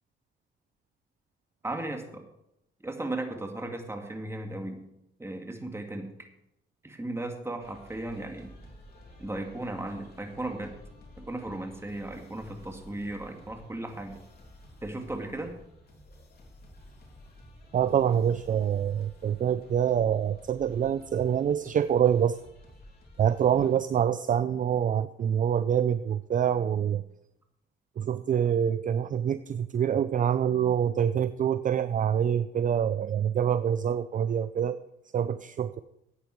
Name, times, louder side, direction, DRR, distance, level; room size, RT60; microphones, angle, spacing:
voice 1, 1.6-2.2 2.8-4.8 5.2-6.1 6.8-8.5 9.2-10.8 11.2-14.2 14.8-15.5, right 2 dB, 15° right, 4 dB, 2.1 m, -36 dB
sound 1, 7.6-23.8, left 1 dB, 50° left, 3.5 m, -52 dB
voice 2, 17.7-22.4 23.2-27.0 28.0-34.8 35.1-35.8, right 9 dB, 40° right, 13 dB, 0.5 m, -26 dB
13.0 x 8.9 x 4.6 m, 0.83 s
cardioid pair, 90°, 20 cm